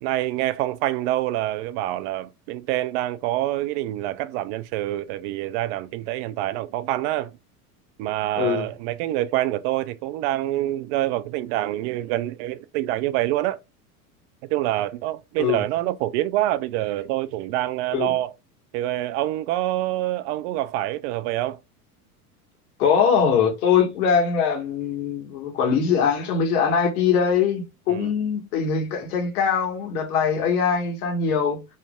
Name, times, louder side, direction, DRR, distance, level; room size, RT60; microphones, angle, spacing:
voice 1, 0.0-7.3 8.0-13.6 14.5-18.3 18.7-21.6 27.9-28.1, right 15 dB, 50° right, 0.5 m, -26 dB
voice 2, 8.3-8.7 15.4-15.6 17.9-18.1 22.8-31.6, left 6 dB, 75° left, 1.6 m, -22 dB
5.2 x 3.2 x 2.3 m
hypercardioid pair, 95°, 45 cm